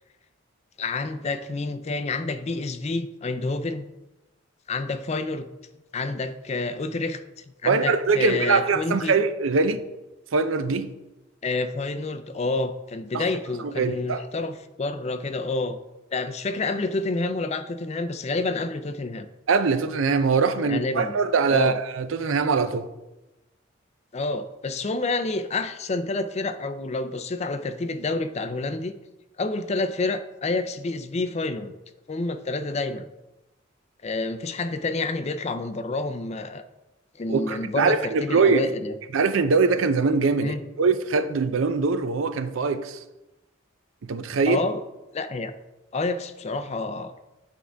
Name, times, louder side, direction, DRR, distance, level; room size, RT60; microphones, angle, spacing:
voice 1, 0.8-3.9 4.7-5.5 5.9-7.2 7.6-9.1 11.4-15.8 16.1-19.3 20.6-21.2 21.5-21.8 24.1-28.9 29.4-31.7 32.1-33.1 34.0-36.6 37.2-38.9 40.4-40.6 44.5-44.8 45.1-45.5 45.9-47.1, left 3 dB, 35° left, 0.4 m, -28 dB
voice 2, 7.6-9.8 10.3-10.9 13.1-13.2 13.8-14.2 19.5-22.9 37.3-38.7 39.1-43.0 44.0-44.6, right 4 dB, 80° right, 0.5 m, -22 dB
8.6 x 4.8 x 3.4 m
head